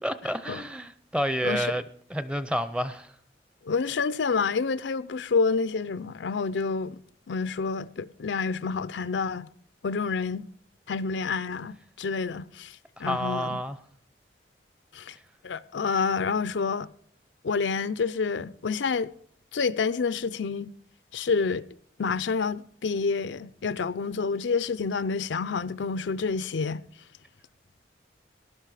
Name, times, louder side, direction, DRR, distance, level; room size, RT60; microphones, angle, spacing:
voice 1, 0.0-3.1 13.0-13.8, equal, 5° right, 0.6 m, -30 dB
voice 2, 1.4-1.8 3.7-7.0 7.3-9.5 9.8-10.4 10.9-12.7 13.0-13.6 14.9-15.1 15.4-16.9 17.4-19.1 19.5-20.7 21.1-21.7 22.0-26.8, left 5 dB, 85° left, 0.5 m, -28 dB
18.0 x 11.5 x 4.9 m
head